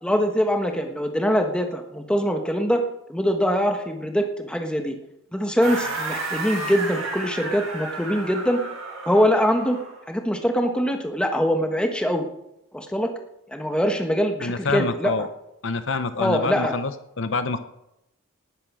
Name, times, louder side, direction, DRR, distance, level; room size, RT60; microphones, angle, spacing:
voice 1, 0.0-2.8 3.1-4.9 5.3-8.6 9.0-9.8 10.1-12.3 12.7-13.1 13.5-15.1 16.2-16.7, equal, 5° left, 4 dB, 1.3 m, -23 dB
sound 1, 5.6-10.0, right 3 dB, 75° right, 6.2 m, -32 dB
voice 2, 14.4-15.3 15.6-16.9 17.2-17.6, left 4 dB, 55° left, 11 dB, 0.8 m, -26 dB
19.0 x 8.9 x 6.2 m, 0.87 s
head